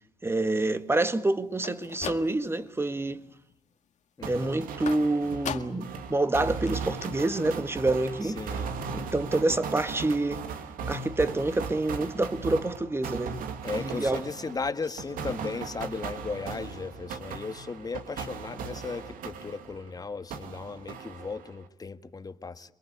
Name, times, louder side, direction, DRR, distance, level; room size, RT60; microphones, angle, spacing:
voice 1, 0.2-3.2 4.2-8.4 8.9-10.4 10.9-13.4 13.7-14.2, right 2 dB, 15° right, 1.8 m, -27 dB
sound 1, 1.5-2.7 3.1-3.6 4.9-6.0 6.3-6.4 6.7-6.8 7.0-7.1, left 8 dB, 55° left, 1.9 m, -39 dB
voice 2, 4.2-4.6 8.2-8.7 13.6-22.7, left 4 dB, 25° left, 1.7 m, -36 dB
sound 2, 4.2-20.0 20.3-21.7, right 6 dB, 80° right, 2.5 m, -38 dB
27.5 x 22.0 x 8.2 m
cardioid pair, 95°, 14 cm